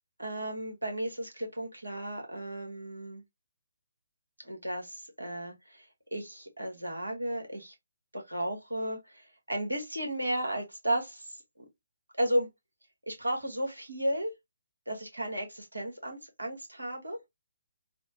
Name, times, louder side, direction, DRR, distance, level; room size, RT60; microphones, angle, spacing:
voice 1, 0.2-3.2 4.4-7.7 8.1-11.6 12.2-12.5 13.1-14.3 14.9-17.2, right 1 dB, 75° right, 1.3 m, -34 dB
3.3 x 2.1 x 2.8 m
figure-of-eight pair, 135°, 0 cm